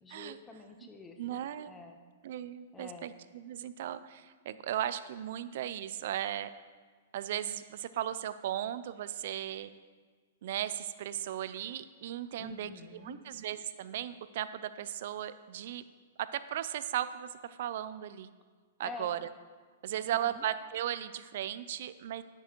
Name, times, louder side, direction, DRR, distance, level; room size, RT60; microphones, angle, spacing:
voice 1, 0.0-2.0 2.7-3.1 12.4-13.2 18.8-19.1 19.9-20.4, left 3 dB, 10° left, 4 dB, 0.6 m, -48 dB
voice 2, 1.2-1.7 2.2-6.5 7.1-9.7 10.4-12.7 13.0-15.8 16.3-18.3 18.8-19.3 19.8-22.2, right 11 dB, 50° right, 13 dB, 0.4 m, -36 dB
10.0 x 6.8 x 4.5 m, 1.5 s
hypercardioid pair, 170°, 0 cm